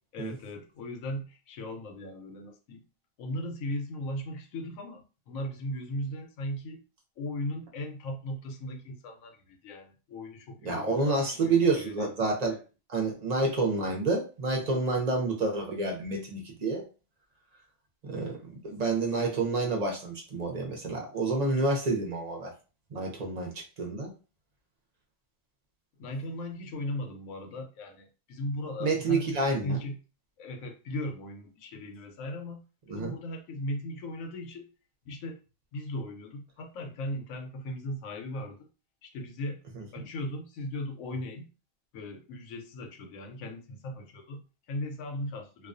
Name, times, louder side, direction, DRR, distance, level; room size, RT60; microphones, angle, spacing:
voice 1, 0.1-2.8 3.2-6.8 7.2-12.1 26.0-30.0 30.4-34.7 35.1-35.4 35.7-38.6 39.0-39.6 39.9-41.5 41.9-45.7, left 1 dB, 85° left, 4 dB, 1.0 m, -37 dB
voice 2, 10.6-12.6 12.9-16.8 18.0-22.5 22.9-24.1 28.8-29.8 32.9-33.1 40.0-40.1, right 3 dB, 50° right, 0 dB, 0.5 m, -29 dB
2.3 x 2.2 x 2.5 m, 0.33 s
omnidirectional pair, 1.4 m